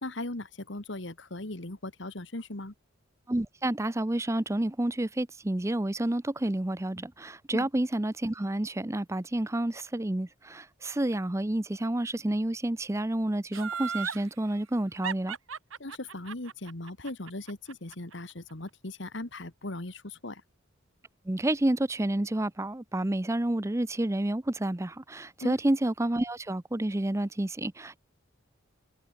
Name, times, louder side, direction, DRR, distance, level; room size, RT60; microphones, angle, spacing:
voice 1, 0.0-2.7 7.5-7.7 15.8-20.4 25.4-25.6, left 2 dB, 60° left, 1.9 m, -38 dB
voice 2, 3.3-15.4 21.3-28.0, right 1 dB, 15° right, 0.5 m, -29 dB
Laughter, 13.5-14.2 15.0-18.1 18.5-18.6, right 6 dB, 80° right, 1.5 m, -35 dB
head